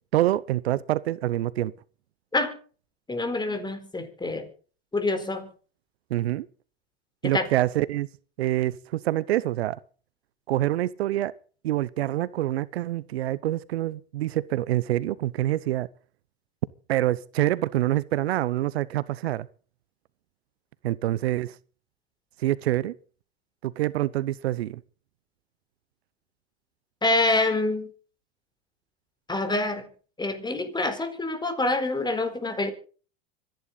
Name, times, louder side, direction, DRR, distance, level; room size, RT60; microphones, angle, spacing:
voice 1, 0.1-1.7 6.1-6.5 7.2-8.1 8.4-9.8 10.5-11.3 11.6-15.9 16.9-19.5 20.8-21.6 22.4-22.9 23.6-24.8, right 14 dB, 80° right, 0.9 m, -26 dB
voice 2, 3.1-4.5 4.9-5.5 7.2-7.4 27.0-27.9 29.3-29.9 30.2-32.7, left 2 dB, 15° left, 4.3 m, -26 dB
26.0 x 10.5 x 4.0 m
hypercardioid pair, 95°, 31 cm